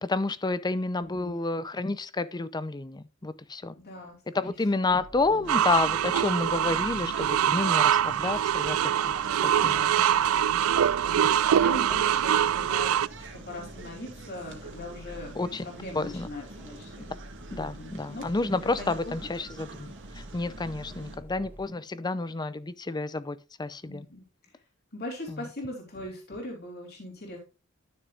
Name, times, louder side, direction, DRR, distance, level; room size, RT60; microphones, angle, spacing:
voice 1, 0.0-3.7 4.4-9.1 9.4-9.9 11.2-11.3 15.4-15.6 16.0-16.3 17.5-24.1, left 3 dB, 20° left, 0.5 m, -30 dB
voice 2, 0.9-1.4 3.7-4.5 5.2-5.5 9.6-10.1 11.2-15.3 15.6-17.1 17.5-19.3 20.9-21.3 23.9-24.6 24.9-27.4, left 1 dB, 50° left, 3.2 m, -41 dB
sound 1, 4.9-21.7, equal, 10° right, 2.7 m, -48 dB
sound 2, 5.4-21.2, right 3 dB, 60° right, 1.7 m, -45 dB
sound 3, 5.5-13.1, right 10 dB, 80° right, 0.3 m, -24 dB
12.0 x 6.6 x 2.4 m
head